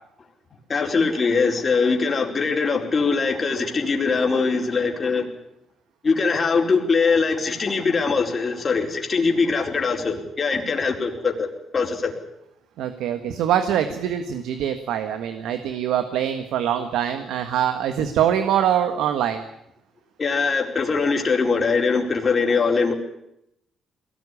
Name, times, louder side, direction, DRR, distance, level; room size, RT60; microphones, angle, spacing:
voice 1, 0.7-5.3 6.0-12.1 20.2-22.9, left 4 dB, 35° left, 2 dB, 4.6 m, -22 dB
voice 2, 12.8-19.5, right 10 dB, 85° right, 8 dB, 1.6 m, -23 dB
21.5 x 18.5 x 10.0 m, 0.80 s
cardioid pair, 90°, 0 cm